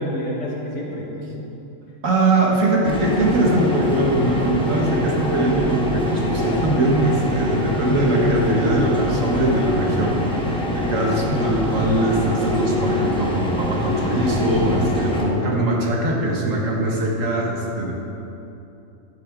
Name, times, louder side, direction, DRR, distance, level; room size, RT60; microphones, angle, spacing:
voice 1, 0.0-1.5 15.1-15.8, equal, 60° left, -3 dB, 1.7 m, -30 dB
voice 2, 2.0-17.9, right 1 dB, 75° right, -2 dB, 1.6 m, -21 dB
sound 1, 2.8-15.2, left 1 dB, 5° left, 1.0 m, -24 dB
11.0 x 8.0 x 3.6 m, 2.9 s
omnidirectional pair, 1.4 m